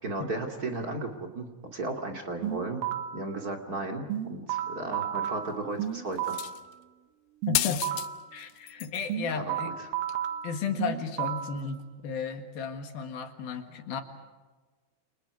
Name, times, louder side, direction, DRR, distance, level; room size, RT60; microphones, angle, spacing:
voice 1, 0.0-2.8 3.1-6.4 9.3-9.9, right 2 dB, 40° right, 3 dB, 1.4 m, -35 dB
sound 1, 2.4-3.3 4.1-6.6 7.4-8.3 9.1-11.6, right 11 dB, 80° right, 4.0 m, -33 dB
sound 2, 6.3-6.7 7.5-8.1 8.4-9.1 10.1-10.2, left 15 dB, 75° left, 2.7 m, -31 dB
voice 2, 7.5-7.8 8.3-9.7 10.4-11.8 12.0-14.0, left 6 dB, 60° left, 6 dB, 3.0 m, -34 dB
29.5 x 29.5 x 4.9 m, 1.3 s
omnidirectional pair, 5.8 m